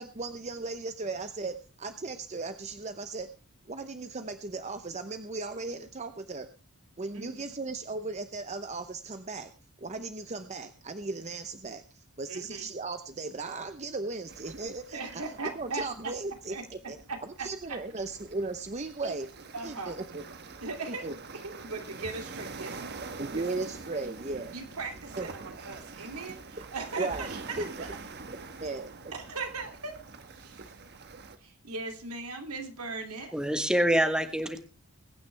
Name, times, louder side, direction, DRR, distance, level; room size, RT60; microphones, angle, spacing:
voice 1, 0.0-3.3 3.7-6.5 7.0-9.5 9.8-15.0 15.4-17.0 17.4-19.3 19.6-20.2 21.0-21.1 23.2-24.5 25.2-25.3 27.0-27.3 27.6-27.7 28.3-28.9, right 3 dB, 30° right, 9 dB, 0.8 m, -36 dB
voice 2, 7.1-7.6 12.3-12.7 14.9-16.1 16.5-16.6 17.1-17.8 19.0-19.1 19.5-20.0 20.6-23.7 24.0-27.9 29.1-30.0 30.3-30.8 31.4-33.3, right 3 dB, 80° right, 4 dB, 2.8 m, -39 dB
sound 1, 14.3-31.4, right 4 dB, 50° right, 1.2 m, -45 dB
voice 3, 33.3-34.6, right 1 dB, 5° right, 7 dB, 1.3 m, -25 dB
22.0 x 9.5 x 3.4 m, 0.33 s
head